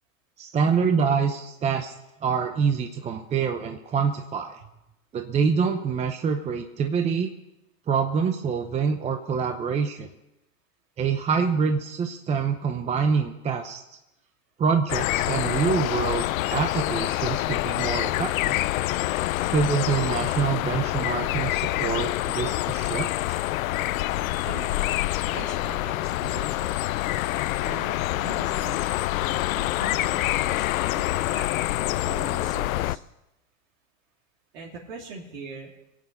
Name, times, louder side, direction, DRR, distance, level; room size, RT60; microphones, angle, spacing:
voice 1, 0.4-1.9 2.2-4.6 5.1-7.3 7.9-10.1 11.0-13.8 14.6-16.2 16.5-18.6 19.5-23.1, right 6 dB, 15° right, 5 dB, 0.7 m, -26 dB
sound 1, 14.9-33.0, left 16 dB, 75° left, 0.6 m, -26 dB
voice 2, 24.4-24.7 25.2-26.8 27.6-28.9 29.5-31.5 32.0-33.0 34.5-35.7, right 4 dB, 65° right, -4 dB, 3.1 m, -41 dB
23.0 x 8.9 x 5.3 m, 0.93 s
hypercardioid pair, 135°, 41 cm